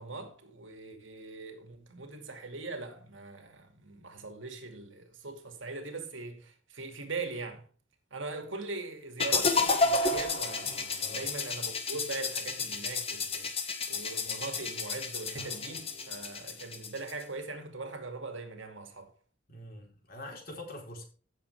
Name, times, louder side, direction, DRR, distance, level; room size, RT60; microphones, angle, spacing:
voice 1, 0.0-7.6 8.1-19.1, right 3 dB, 80° right, 2.4 m, -41 dB
sound 1, 9.2-17.2, left 3 dB, 30° left, 1.6 m, -31 dB
sound 2, 10.6-13.0 15.3-18.2, right 1 dB, 35° right, 3.7 m, -55 dB
voice 2, 19.5-21.0, left 1 dB, 50° left, 4.0 m, -44 dB
16.5 x 7.2 x 3.5 m
head